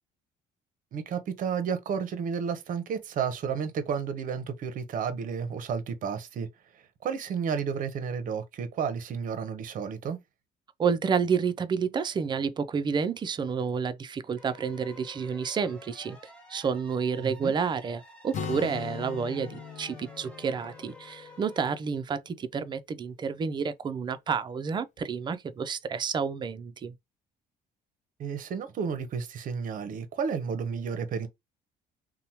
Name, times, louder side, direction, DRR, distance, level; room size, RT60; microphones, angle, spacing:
voice 1, 0.9-6.5 7.0-10.2 17.2-17.6 28.2-31.3, right 6 dB, 55° right, 0.7 m, -32 dB
voice 2, 10.8-16.2 16.5-26.9, right 6 dB, 25° right, 0.3 m, -30 dB
sound 1, 14.4-21.7, left 1 dB, 5° left, 1.0 m, -51 dB
Acoustic guitar, 18.3-22.1, left 7 dB, 45° left, 0.5 m, -40 dB
2.8 x 2.1 x 2.7 m
cardioid pair, 110°, 17 cm